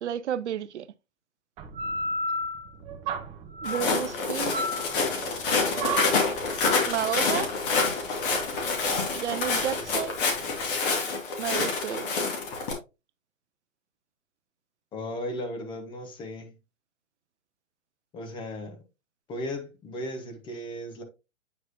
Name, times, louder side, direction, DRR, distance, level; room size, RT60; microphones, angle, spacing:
voice 1, 0.0-0.9 3.6-4.6 6.9-7.5 9.1-10.2 11.4-12.1, right 10 dB, 60° right, 0.6 m, -31 dB
sound 1, 1.6-10.8, right 1 dB, 15° right, 0.8 m, -34 dB
Walk footsteps, 3.6-12.7, left 4 dB, 40° left, 2.3 m, -27 dB
voice 2, 14.9-16.6 18.1-18.8 19.3-21.0, left 1 dB, 10° left, 0.9 m, -36 dB
8.4 x 4.6 x 2.9 m
figure-of-eight pair, 130°, 40 cm